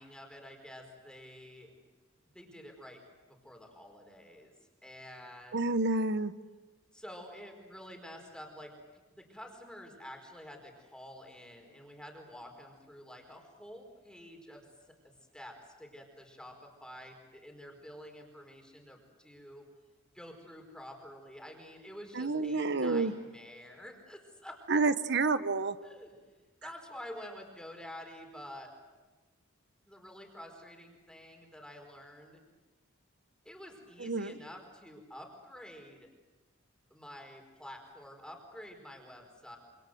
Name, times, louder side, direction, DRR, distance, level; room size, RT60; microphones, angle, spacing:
voice 1, 0.0-1.7 2.3-4.5 4.8-5.7 6.9-8.7 9.1-14.7 15.0-19.6 20.1-24.6 25.8-26.2 26.6-28.7 29.9-32.4 33.4-36.1 36.9-39.6, equal, 5° left, 3 dB, 4.7 m, -49 dB
voice 2, 5.5-6.3 22.1-23.1 24.7-25.8 34.0-34.4, right 3 dB, 60° right, 13 dB, 1.1 m, -29 dB
27.5 x 26.5 x 7.9 m, 1.2 s
head